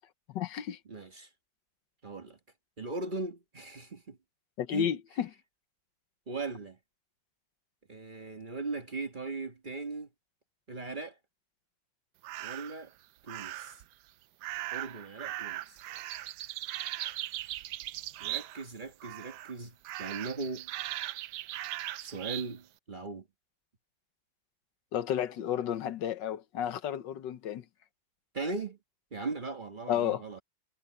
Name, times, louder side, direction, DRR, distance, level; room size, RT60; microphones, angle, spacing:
voice 1, 0.3-0.8 4.6-5.3 24.9-27.6 29.9-30.4, left 10 dB, 70° left, 1.5 m, -32 dB
voice 2, 0.9-1.3 2.0-2.4 2.8-4.2 4.7-4.9 6.3-6.8 7.9-10.1 10.7-11.2 12.4-12.9 13.3-13.8 14.7-15.8 18.2-20.7 22.0-23.3 28.3-28.8 29.1-30.4, right 3 dB, 30° right, 1.3 m, -38 dB
sound 1, 12.2-12.8 13.3-13.8 14.4-18.7 19.0-19.5 19.8-22.5, right 14 dB, 70° right, 1.0 m, -39 dB
omnidirectional pair, 2.1 m